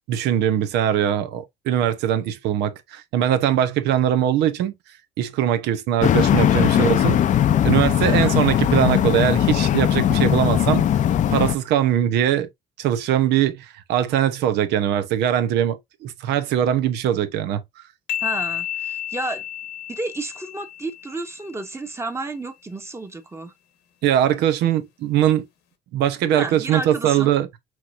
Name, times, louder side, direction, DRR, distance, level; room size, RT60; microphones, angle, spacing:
voice 1, 0.1-4.7 5.2-7.2 7.6-10.8 11.3-12.5 12.8-17.6 24.0-25.5 25.9-27.5, right 10 dB, 85° right, 0.9 m, -21 dB
sound 1, 6.0-11.5, left 10 dB, 50° left, 0.5 m, -19 dB
sound 2, 18.1-21.6, left 11 dB, 90° left, 1.3 m, -31 dB
voice 2, 18.2-19.4 19.9-23.5 26.3-27.3, right 2 dB, 15° right, 1.1 m, -31 dB
5.9 x 3.1 x 2.5 m
cardioid pair, 110°, 17 cm